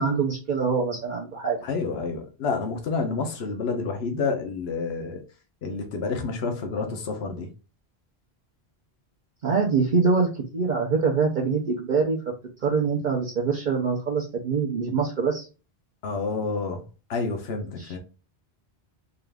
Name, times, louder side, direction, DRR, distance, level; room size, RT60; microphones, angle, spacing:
voice 1, 0.0-1.6 1.9-2.0 9.4-12.2 12.6-15.5 17.8-18.0, right 5 dB, 50° right, 0.8 m, -24 dB
voice 2, 1.6-5.2 5.6-7.5 16.0-16.8 17.1-18.0, left 4 dB, 75° left, 1.1 m, -29 dB
3.9 x 2.5 x 3.4 m
omnidirectional pair, 1.1 m